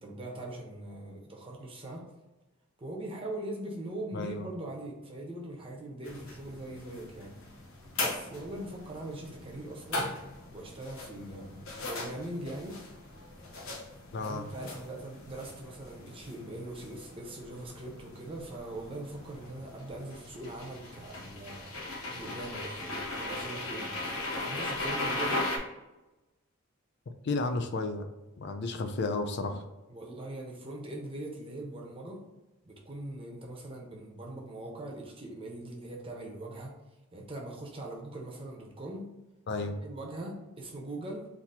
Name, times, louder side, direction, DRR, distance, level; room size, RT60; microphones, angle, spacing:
voice 1, 0.0-2.1 2.8-7.3 7.9-10.1 10.5-12.8 14.2-21.7 22.1-23.9 24.4-25.5 29.9-32.2 32.6-36.7 37.1-39.1 39.8-41.3, right 1 dB, 25° right, -1 dB, 0.9 m, -41 dB
voice 2, 4.1-4.5 14.1-14.4 27.2-28.1 28.4-29.6 39.5-39.8, left 3 dB, 55° left, 7 dB, 0.4 m, -32 dB
sound 1, 6.0-25.6, left 2 dB, 80° left, 1.0 m, -39 dB
4.1 x 2.9 x 4.3 m, 1.0 s
head